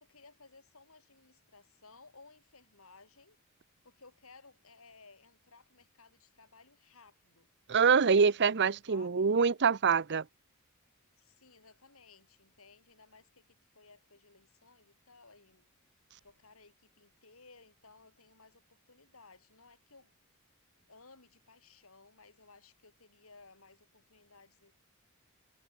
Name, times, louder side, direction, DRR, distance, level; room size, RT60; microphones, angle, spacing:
voice 1, 0.0-3.4 3.8-7.5 8.9-9.3 11.2-15.7 16.2-20.1 20.9-24.7, left 4 dB, 70° left, 5.8 m, -59 dB
voice 2, 7.7-10.2, right 5 dB, 55° right, 0.7 m, -25 dB
head